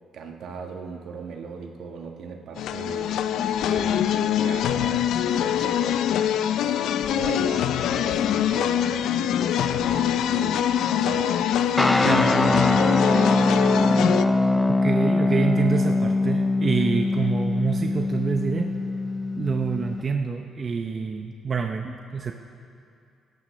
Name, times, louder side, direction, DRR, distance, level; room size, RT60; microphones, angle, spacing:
voice 1, 0.1-3.3 3.6-6.0 7.1-7.7 8.0-10.6 11.0-13.9 14.2-14.5, right 5 dB, 75° right, 3 dB, 1.3 m, -38 dB
sound 1, 2.6-14.2, left 10 dB, 80° left, 0.4 m, -24 dB
sound 2, 11.8-20.0, left 2 dB, 10° left, 0.3 m, -22 dB
voice 2, 12.0-12.5 14.7-18.7 19.4-22.3, right 5 dB, 40° right, 4 dB, 0.6 m, -26 dB
17.0 x 13.5 x 3.1 m, 2.4 s
cardioid pair, 90°, 0 cm